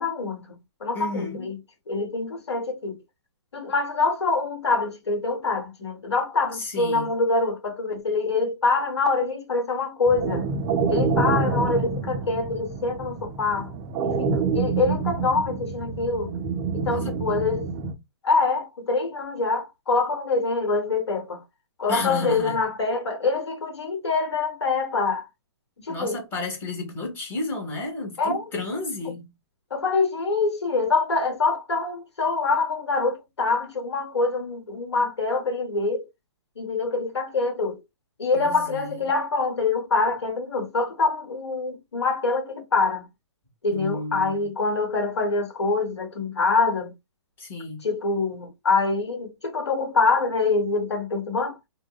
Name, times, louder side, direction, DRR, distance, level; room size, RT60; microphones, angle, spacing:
voice 1, 0.0-1.6 1.9-3.0 3.5-10.4 10.9-13.7 14.0-16.3 16.7-17.7 18.2-21.4 21.8-25.3 25.8-26.2 28.2-28.4 29.7-36.1 36.6-37.8 38.2-43.1 43.6-46.9 47.8-51.6, left 3 dB, 85° left, 1.0 m, -25 dB
voice 2, 0.9-1.5 6.5-7.1 16.9-17.2 21.9-22.6 25.9-29.3 38.3-39.0 43.7-44.5 47.4-47.8, left 2 dB, 15° left, 1.1 m, -32 dB
sound 1, 10.1-17.9, right 4 dB, 20° right, 0.3 m, -27 dB
2.6 x 2.1 x 2.2 m
hypercardioid pair, 140°, 14 cm